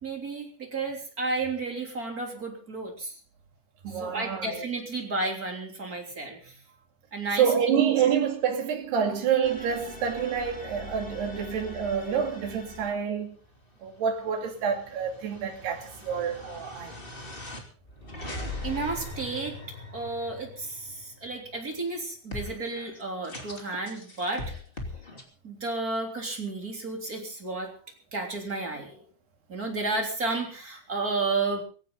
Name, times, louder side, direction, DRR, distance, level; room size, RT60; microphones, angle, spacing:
voice 1, 0.0-3.1 3.9-6.5 7.1-7.8 18.6-19.6 19.9-24.5 25.4-27.7 28.1-29.0 29.5-31.6, right 3 dB, 20° right, 3.1 m, -32 dB
voice 2, 3.8-4.7 7.4-13.4 13.8-16.9, right 7 dB, 65° right, 4.4 m, -27 dB
sound 1, 9.4-12.9 13.4-21.6 22.3-25.2, left 2 dB, 15° left, 1.9 m, -41 dB
18.5 x 16.5 x 3.9 m
omnidirectional pair, 5.2 m